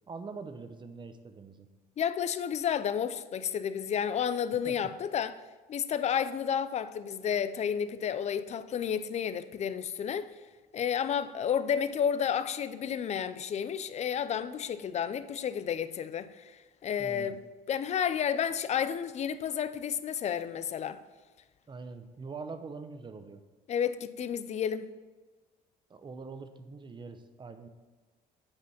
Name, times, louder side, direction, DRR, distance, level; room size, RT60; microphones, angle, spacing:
voice 1, 0.1-1.7 4.6-4.9 17.0-17.4 21.7-23.4 25.9-27.7, right 4 dB, 30° right, 0.8 m, -43 dB
voice 2, 2.0-5.3 5.7-10.3 10.7-16.4 16.8-17.4 17.7-21.0 23.7-24.9, left 8 dB, 40° left, 0.5 m, -31 dB
8.4 x 5.1 x 5.8 m
cardioid pair, 110°, 17 cm